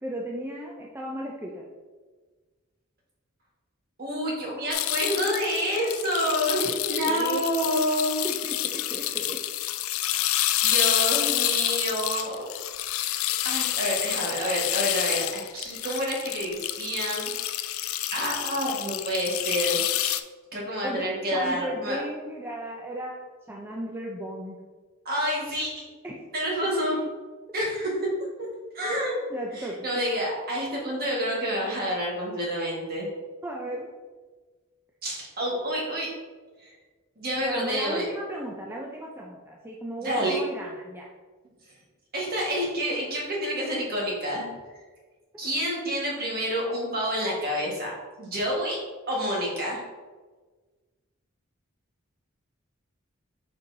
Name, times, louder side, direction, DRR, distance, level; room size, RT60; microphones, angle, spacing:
voice 1, 0.0-1.6 6.6-6.7 7.1-7.5 7.7-7.8 8.2-9.4 20.8-23.2 23.5-24.6 26.0-26.2 26.8-26.9 29.3-29.9 33.4-33.9 37.4-41.1, right 1 dB, 10° right, -2 dB, 0.5 m, -35 dB
voice 2, 4.0-8.3 10.6-12.5 13.4-17.3 18.1-20.2 20.5-22.0 25.1-25.9 26.3-27.0 27.5-28.0 28.7-29.2 29.6-33.1 35.0-36.1 36.6-36.7 37.2-38.1 40.0-40.4 42.1-44.5 45.4-48.8 49.1-49.8, equal, 45° right, -3 dB, 1.7 m, -28 dB
sound 1, 4.7-20.2, left 14 dB, 75° left, 0.3 m, -28 dB
6.6 x 5.3 x 2.8 m, 1.4 s
head